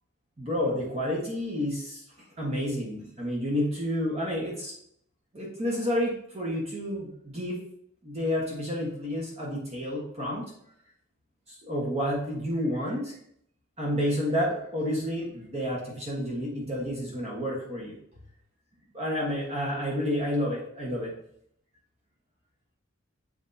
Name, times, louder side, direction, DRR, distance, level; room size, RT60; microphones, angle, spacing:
voice 1, 0.4-2.0 2.4-4.7 5.3-7.6 8.0-10.5 11.5-13.1 13.8-17.9 18.9-21.1, equal, 30° right, -4 dB, 1.3 m, -30 dB
7.7 x 4.7 x 2.7 m, 0.69 s
head